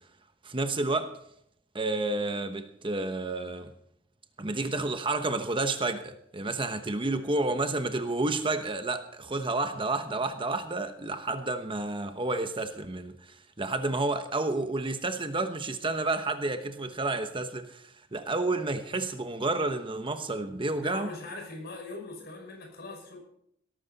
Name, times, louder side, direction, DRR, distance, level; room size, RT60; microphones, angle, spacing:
voice 1, 0.4-1.2 1.7-3.7 4.4-21.1, right 2 dB, 25° right, 1.0 m, -30 dB
voice 2, 20.7-23.2, left 2 dB, 55° left, 5.6 m, -41 dB
17.5 x 13.5 x 4.1 m
head